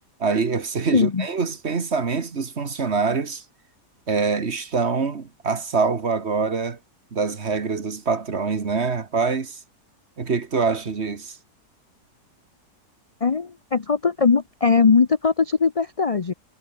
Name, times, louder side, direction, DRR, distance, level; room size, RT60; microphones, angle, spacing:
voice 1, 0.2-3.4 4.1-6.8 7.1-9.6 10.2-11.4, right 5 dB, 40° right, 1.8 m, -24 dB
voice 2, 0.9-1.3 13.2-16.3, left 5 dB, 50° left, 0.4 m, -20 dB
omnidirectional pair, 1.8 m